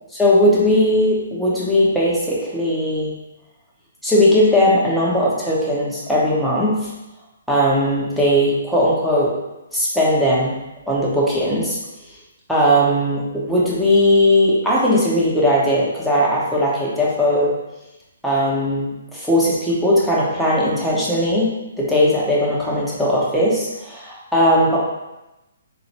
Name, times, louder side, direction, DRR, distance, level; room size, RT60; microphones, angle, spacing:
voice 1, 0.1-3.1 4.0-6.9 7.5-9.3 9.7-10.5 10.9-11.8 12.5-17.5 18.2-24.8, equal, ahead, -8 dB, 1.0 m, -18 dB
4.1 x 3.0 x 3.0 m, 0.98 s
figure-of-eight pair, 130°, 0 cm